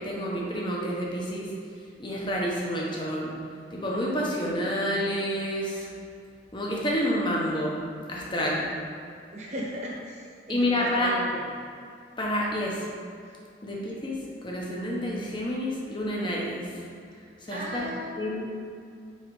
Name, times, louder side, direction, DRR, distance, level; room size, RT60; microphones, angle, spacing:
voice 1, 0.0-1.5 2.0-3.4 3.7-5.9 6.5-7.8 8.1-8.7 10.5-11.1 12.2-12.9 13.6-16.7 17.4-17.9 18.2-18.5, equal, 25° left, -3 dB, 1.1 m, -29 dB
voice 2, 9.3-11.3 17.5-18.5, equal, 40° right, -4 dB, 1.3 m, -36 dB
5.7 x 4.8 x 4.9 m, 2.4 s
head